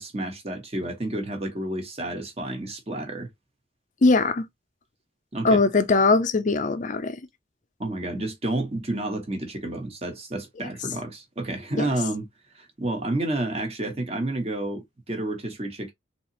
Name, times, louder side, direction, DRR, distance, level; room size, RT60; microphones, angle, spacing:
voice 1, 0.0-3.3 5.3-5.6 7.8-12.3 12.5-15.9, right 1 dB, 30° right, 1.3 m, -30 dB
voice 2, 4.0-4.5 5.4-7.2 11.8-11.9, left 3 dB, 40° left, 0.5 m, -20 dB
4.0 x 2.9 x 2.9 m
head